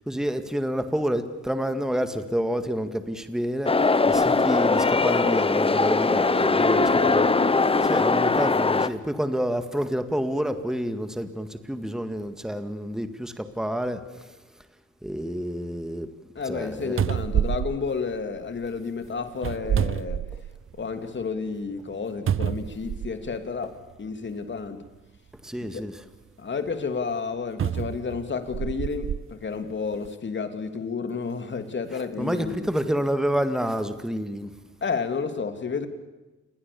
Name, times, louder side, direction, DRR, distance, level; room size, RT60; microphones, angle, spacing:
voice 1, 0.0-7.3 7.9-14.3 15.0-16.1 16.5-17.0 25.4-26.0 32.2-34.5, equal, ahead, 9 dB, 2.0 m, -28 dB
sound 1, 3.7-8.9, left 3 dB, 20° left, 1.1 m, -21 dB
voice 2, 6.6-8.0 16.3-20.2 20.8-24.8 25.7-25.8 26.4-32.7 34.8-35.9, left 5 dB, 40° left, 8 dB, 3.0 m, -31 dB
sound 2, 16.6-16.7 17.0-18.7 19.3-20.8 21.2-21.3 22.3-23.4 24.3-24.4 27.6-29.2 29.9-30.1, right 9 dB, 45° right, 0.8 m, -28 dB
28.5 x 21.0 x 7.1 m, 1.1 s
cardioid pair, 90°, 30 cm